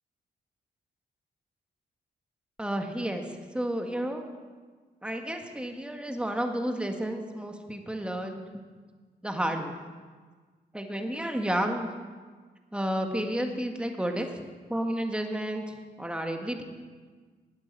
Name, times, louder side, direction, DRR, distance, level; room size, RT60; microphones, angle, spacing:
voice 1, 2.6-4.2 5.0-8.6 9.2-9.8 10.7-11.9 12.7-14.3 14.7-16.6, right 1 dB, 5° right, 4 dB, 1.7 m, -31 dB
12.0 x 8.8 x 7.3 m, 1.5 s
cardioid pair, 55°, 18 cm